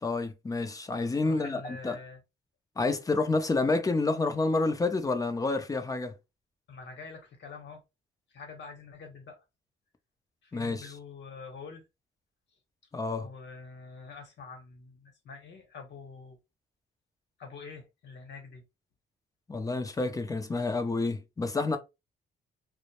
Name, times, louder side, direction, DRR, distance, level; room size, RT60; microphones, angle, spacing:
voice 1, 0.0-2.0 2.8-6.1 10.5-10.9 12.9-13.3 19.5-21.8, left 3 dB, 15° left, 0.4 m, -29 dB
voice 2, 1.2-2.2 6.7-7.8 8.3-9.4 10.4-11.8 13.2-16.4 17.4-18.6, left 4 dB, 65° left, 0.9 m, -46 dB
2.1 x 2.0 x 2.9 m
cardioid pair, 90°, 20 cm